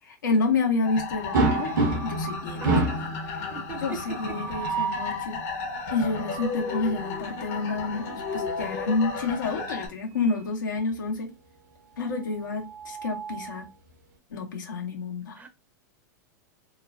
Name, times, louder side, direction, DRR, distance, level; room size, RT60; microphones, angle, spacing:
voice 1, 0.2-1.8 2.0-2.6 3.8-5.4 5.9-11.3 12.0-13.7 14.3-15.4, left 3 dB, 90° left, 1.0 m, -29 dB
sound 1, 0.8-9.9, left 4 dB, 60° left, 0.9 m, -34 dB
sound 2, 1.3-2.3 2.6-3.1 4.3-5.1 7.8-8.8 10.2-10.4 10.8-10.9 12.4-13.6, right 3 dB, 70° right, 0.9 m, -28 dB
voice 2, 3.5-4.4 15.3-15.5, right 5 dB, 15° right, 0.6 m, -39 dB
3.0 x 2.1 x 2.5 m
hypercardioid pair, 110°, 10 cm